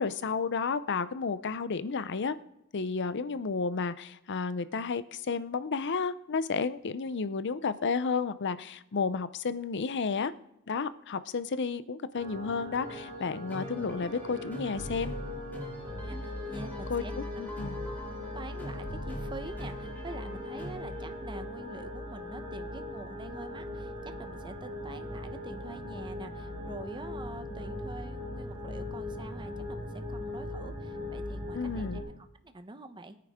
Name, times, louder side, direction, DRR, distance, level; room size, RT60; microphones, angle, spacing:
voice 1, 0.0-2.4 2.7-10.3 10.7-15.1 16.9-17.0 17.4-17.8 31.5-32.0, left 5 dB, 55° left, 14 dB, 0.6 m, -32 dB
sound 1, 12.1-32.0, left 1 dB, 65° right, 5.9 m, -39 dB
sound 2, 12.8-21.2, equal, 10° left, 3.1 m, -43 dB
voice 2, 16.0-17.1 18.3-33.2, right 2 dB, 20° right, 9 dB, 0.8 m, -46 dB
21.0 x 9.5 x 3.6 m, 0.81 s
head